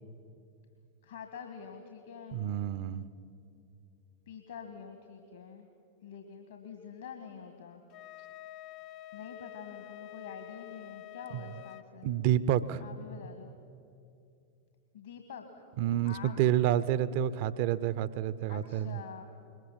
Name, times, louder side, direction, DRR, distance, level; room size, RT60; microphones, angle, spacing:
voice 1, 1.0-2.5 4.3-5.7 6.0-7.8 9.1-12.1 12.8-13.5 14.9-15.6 16.0-16.5 18.5-19.2, left 7 dB, 65° left, 5 dB, 1.7 m, -46 dB
voice 2, 2.3-3.1 12.0-12.8 15.8-19.0, right 11 dB, 50° right, 17 dB, 0.7 m, -29 dB
Wind instrument woodwind instrument, 7.9-11.9, left 15 dB, 40° left, 0.6 m, -48 dB
22.0 x 20.5 x 7.4 m, 2.5 s
figure-of-eight pair, 90°, 0 cm